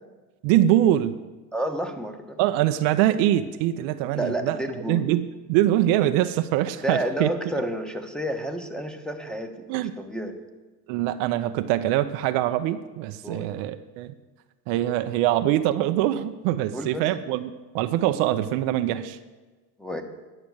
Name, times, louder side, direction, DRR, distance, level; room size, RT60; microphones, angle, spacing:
voice 1, 0.4-1.2 2.4-4.6 4.9-7.3 9.7-9.9 10.9-14.1 14.7-19.2, right 13 dB, 60° right, 10 dB, 0.7 m, -23 dB
voice 2, 1.5-2.4 4.1-5.1 6.8-9.7 10.0-10.4 13.2-13.5 16.7-17.1 19.8-20.0, right 1 dB, ahead, 3 dB, 1.1 m, -30 dB
10.5 x 5.9 x 8.0 m, 1.3 s
hypercardioid pair, 80°, 48 cm